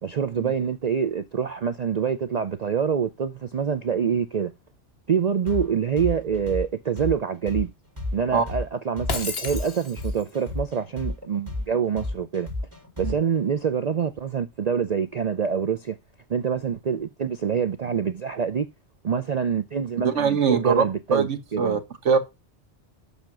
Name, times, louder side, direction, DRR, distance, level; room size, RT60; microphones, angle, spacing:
voice 1, 0.0-4.5 5.1-7.7 8.1-12.5 13.0-16.0 16.3-18.7 19.0-21.8, right 7 dB, 45° right, 0.6 m, -26 dB
sound 1, 5.5-13.4, left 2 dB, 25° right, 5.4 m, -32 dB
Shatter, 9.1-10.3, left 4 dB, 60° left, 1.7 m, -32 dB
voice 2, 20.0-20.9 21.1-21.8 22.0-22.2, right 6 dB, 80° right, 1.6 m, -22 dB
7.2 x 6.6 x 6.0 m
omnidirectional pair, 1.2 m